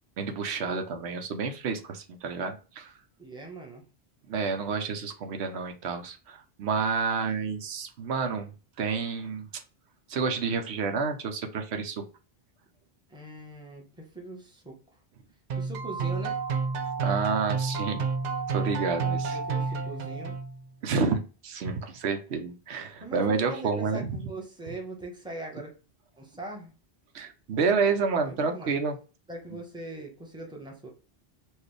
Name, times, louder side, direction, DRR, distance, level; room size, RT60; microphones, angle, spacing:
voice 1, 0.2-2.9 4.3-8.5 8.8-9.5 10.1-12.0 17.0-18.1 18.5-19.4 20.8-24.1 27.1-29.0, right 5 dB, 90° right, 6 dB, 1.0 m, -29 dB
voice 2, 3.2-3.8 13.1-15.0 15.6-16.4 19.3-20.4 23.0-25.7 26.2-26.7 28.2-28.8 29.3-30.9, right 2 dB, 5° right, -1 dB, 1.0 m, -41 dB
sound 1, 15.5-20.7, right 5 dB, 55° right, 0.6 m, -30 dB
4.5 x 2.4 x 3.2 m, 0.35 s
omnidirectional pair, 1.1 m